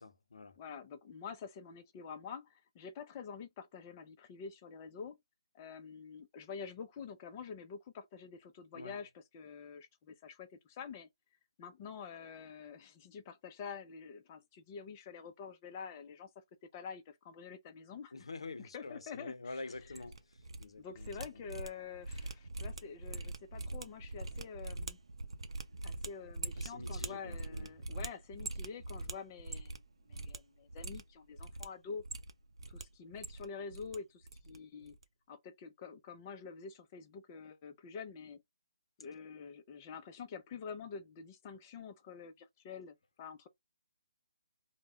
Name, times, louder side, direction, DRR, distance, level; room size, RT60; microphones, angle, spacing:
voice 1, 0.0-0.6 8.7-9.0 18.1-21.4 26.6-27.7, left 3 dB, 85° left, 0.5 m, -47 dB
voice 2, 0.6-5.2 5.5-11.1 11.6-16.4 16.7-18.1 18.6-19.6 20.8-25.0 25.8-29.7 30.1-32.0 32.7-35.0 35.3-38.4 39.0-43.5, left 6 dB, 25° left, 0.4 m, -47 dB
sound 1, 19.8-20.6 20.9-29.8 30.1-30.4 30.7-31.7 32.0-32.8 33.1-34.0 34.2-34.6 34.8-35.0, right 2 dB, 85° right, 0.5 m, -43 dB
2.2 x 2.0 x 3.5 m
hypercardioid pair, 160°, 3 cm